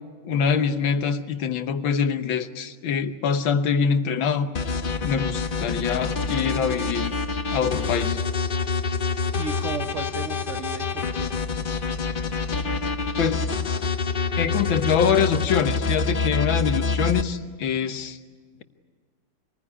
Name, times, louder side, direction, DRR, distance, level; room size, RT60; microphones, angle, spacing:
voice 1, 0.2-4.5 5.0-7.1 7.5-8.2 13.2-13.5 14.4-18.2, left 6 dB, 90° left, 9 dB, 1.9 m, -24 dB
sound 1, 4.5-17.2, left 4 dB, 50° left, 0.6 m, -27 dB
voice 2, 9.3-11.4, right 5 dB, 50° right, 6 dB, 1.0 m, -34 dB
26.0 x 20.0 x 10.0 m, 1.5 s
omnidirectional pair, 2.1 m